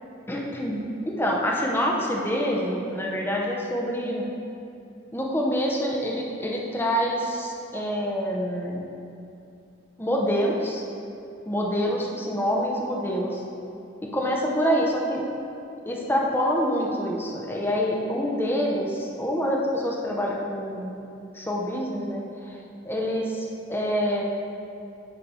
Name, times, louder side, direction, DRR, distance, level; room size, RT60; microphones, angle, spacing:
voice 1, 0.3-4.2 5.1-8.8 10.0-10.8 11.5-13.4 14.0-15.2 15.9-21.0 21.3-22.2 22.8-24.2, equal, 10° left, -2 dB, 0.7 m, -26 dB
9.8 x 3.3 x 5.4 m, 2.6 s
head